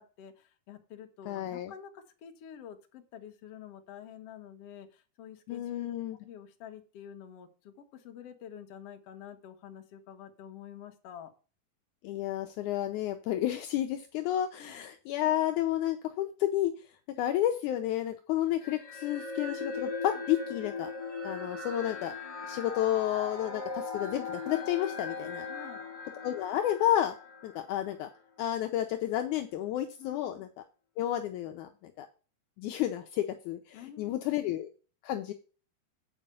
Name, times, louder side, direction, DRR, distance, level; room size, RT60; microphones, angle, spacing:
voice 1, 0.0-5.9 6.2-11.3 14.6-14.8 25.5-25.8 30.0-30.4 33.7-34.4, left 9 dB, 60° left, 5 dB, 1.7 m, -48 dB
voice 2, 1.3-1.7 5.5-6.2 12.0-16.7 17.2-20.9 21.2-22.1 22.5-25.5 26.2-27.1 27.4-28.1 28.4-30.5 31.0-32.1 32.6-34.7 35.0-35.3, left 12 dB, 85° left, 6 dB, 1.7 m, -31 dB
sound 1, 18.6-28.1, left 4 dB, 10° left, 2.2 m, -39 dB
8.8 x 4.9 x 6.9 m, 0.36 s
omnidirectional pair, 4.3 m